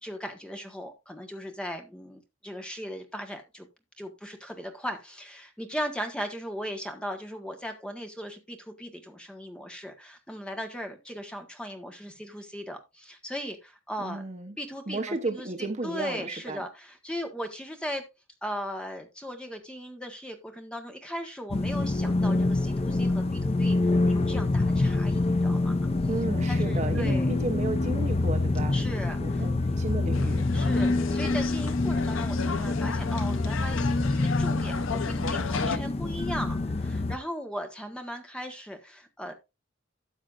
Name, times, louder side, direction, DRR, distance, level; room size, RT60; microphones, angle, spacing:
voice 1, 0.0-3.7 4.0-14.2 14.6-18.1 18.4-25.7 26.5-27.4 28.7-29.4 30.5-39.3, equal, 5° left, 1.4 m, -38 dB
voice 2, 14.0-14.5 14.9-16.7 26.1-28.7 29.2-30.4, right 2 dB, 35° right, 1.0 m, -33 dB
sound 1, 21.5-37.2, left 2 dB, 30° left, 0.5 m, -26 dB
sound 2, 30.1-35.8, left 5 dB, 75° left, 0.7 m, -34 dB
13.0 x 7.2 x 2.5 m
head